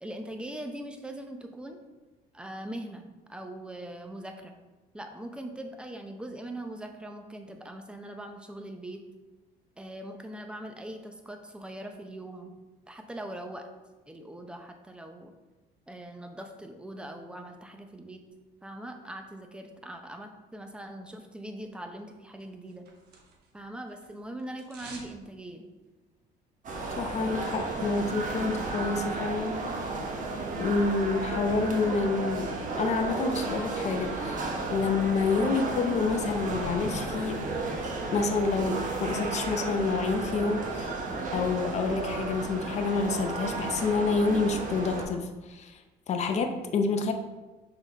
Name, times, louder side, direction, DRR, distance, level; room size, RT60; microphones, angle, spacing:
voice 1, 0.0-1.8 2.3-3.0 3.3-4.5 4.9-9.0 9.8-12.5 12.9-13.7 14.1-15.3 15.9-18.2 18.6-22.9 23.5-25.7, right 1 dB, 5° right, 4 dB, 0.7 m, -41 dB
sound 1, 22.4-23.6 23.9-25.2 25.5-25.6, right 3 dB, 75° right, 1.2 m, -49 dB
sound 2, 26.6-45.0, right 3 dB, 50° right, 1.1 m, -33 dB
voice 2, 27.0-29.8 30.6-37.5 38.1-40.9 41.3-45.8 46.1-47.1, left 4 dB, 40° left, 5 dB, 0.6 m, -28 dB
6.3 x 3.8 x 4.0 m, 1.2 s
cardioid pair, 110°, 17 cm